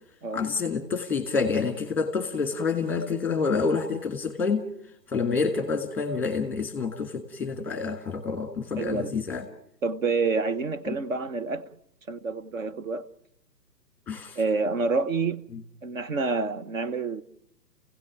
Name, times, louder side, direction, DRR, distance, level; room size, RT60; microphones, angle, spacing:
voice 1, 0.3-4.7 5.1-9.4 10.9-11.0 14.1-14.4, left 4 dB, 5° left, 1.5 m, -28 dB
voice 2, 8.8-9.1 9.8-11.6 12.1-13.0 14.4-15.5 15.8-17.2, right 4 dB, 50° right, 1.1 m, -28 dB
29.0 x 16.5 x 8.9 m
hypercardioid pair, 145°, 50 cm